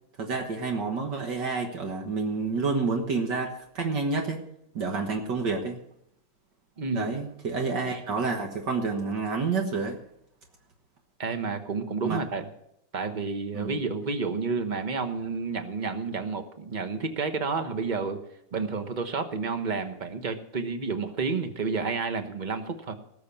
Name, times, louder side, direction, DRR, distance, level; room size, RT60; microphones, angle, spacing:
voice 1, 0.2-4.4 4.8-5.8 6.9-10.0 12.0-12.2 13.5-13.8, right 4 dB, 65° right, 2 dB, 2.0 m, -29 dB
voice 2, 6.8-7.1 11.2-12.5 12.9-18.2 18.5-23.0, right 4 dB, 30° right, 7 dB, 1.1 m, -30 dB
19.0 x 6.6 x 7.1 m, 0.78 s
omnidirectional pair, 2.1 m